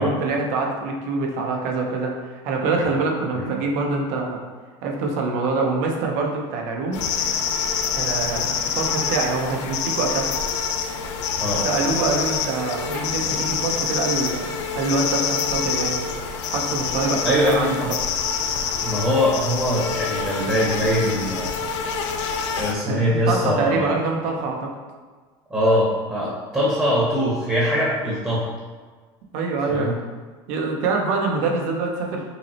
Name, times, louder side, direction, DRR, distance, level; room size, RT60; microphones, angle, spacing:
voice 1, 0.0-4.4 4.8-7.0 7.9-10.3 11.5-14.4 14.7-16.1 16.5-17.7 22.3-22.5 22.9-24.7 29.3-29.9 30.5-32.2, right 3 dB, 60° right, 0 dB, 0.8 m, -25 dB
sound 1, 6.9-22.7, left 6 dB, 80° left, 0.4 m, -26 dB
voice 2, 11.4-11.8 17.2-17.9 18.8-21.6 22.5-23.9 25.5-28.5 29.7-29.9, equal, 10° right, -7 dB, 0.9 m, -22 dB
5.6 x 2.0 x 2.9 m, 1.4 s
supercardioid pair, 110°, 15 cm